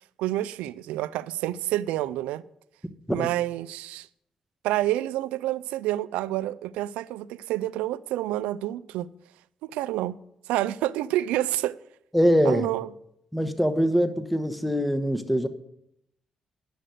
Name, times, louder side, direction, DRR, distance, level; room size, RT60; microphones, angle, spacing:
voice 1, 0.2-2.4 3.1-4.1 4.6-9.1 9.6-10.2 10.5-11.8 12.4-12.9, right 14 dB, 85° right, 0.3 m, -28 dB
voice 2, 12.1-12.7 13.3-15.5, equal, ahead, 1.2 m, -23 dB
11.0 x 6.5 x 7.8 m
hypercardioid pair, 45°, 2 cm